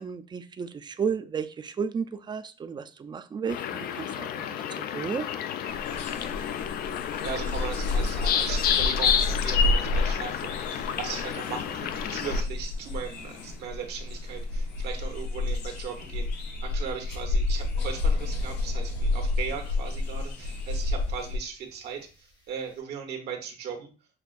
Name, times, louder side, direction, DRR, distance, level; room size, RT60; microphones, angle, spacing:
voice 1, 0.0-5.3, right 6 dB, 25° right, 11 dB, 0.4 m, -33 dB
sound 1, 3.5-12.4, left 8 dB, 65° left, 0.4 m, -30 dB
sound 2, 5.7-21.4, left 2 dB, 90° left, 0.8 m, -30 dB
voice 2, 7.2-16.3 16.6-23.9, right 6 dB, 75° right, 3 dB, 1.0 m, -38 dB
sound 3, 17.7-22.8, left 2 dB, 25° left, 0.8 m, -50 dB
6.2 x 2.4 x 2.4 m, 0.35 s
cardioid pair, 110°, 17 cm